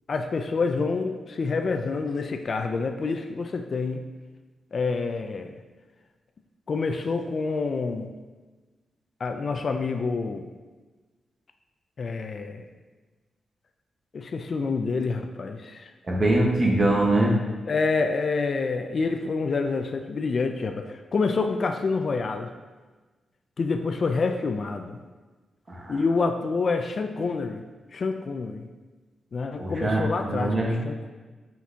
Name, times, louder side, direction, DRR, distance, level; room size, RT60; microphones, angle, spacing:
voice 1, 0.1-4.0 4.7-5.6 6.7-8.1 9.2-10.5 12.0-12.7 14.1-15.9 17.7-22.5 23.6-25.0 25.9-27.6 27.9-28.7 29.3-31.1, left 4 dB, 50° left, 6 dB, 0.4 m, -27 dB
voice 2, 16.1-17.4 25.7-26.0 29.6-30.8, right 1 dB, 35° right, -2 dB, 1.2 m, -23 dB
5.9 x 5.8 x 2.8 m, 1.3 s
wide cardioid pair, 115°, 0 cm